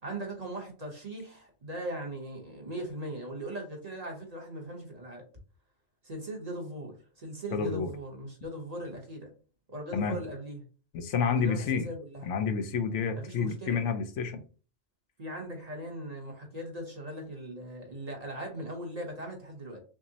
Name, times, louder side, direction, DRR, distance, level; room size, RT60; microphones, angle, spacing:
voice 1, 0.0-5.2 6.0-9.3 9.7-10.6 11.3-12.3 13.1-13.8 15.2-19.8, right 1 dB, 35° right, 1 dB, 0.9 m, -39 dB
voice 2, 7.5-7.9 9.9-10.2 10.9-11.8 12.3-14.4, left 6 dB, 80° left, 8 dB, 0.9 m, -29 dB
5.9 x 2.0 x 2.7 m, 0.37 s
omnidirectional pair, 1.2 m